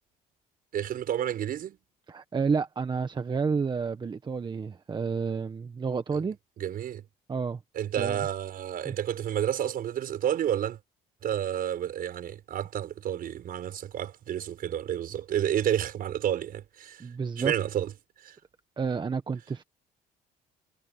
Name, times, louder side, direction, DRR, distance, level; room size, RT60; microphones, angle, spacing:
voice 1, 0.7-1.8 6.1-6.2 6.6-7.0 7.7-10.8 11.2-17.0 17.4-17.9 18.2-18.4, right 10 dB, 60° right, 5.9 m, -30 dB
voice 2, 2.1-6.4 7.3-7.6 7.9-8.3 8.8-9.0 17.0-17.5 18.8-19.6, right 5 dB, 25° right, 1.2 m, -30 dB
cardioid pair, 110°, 17 cm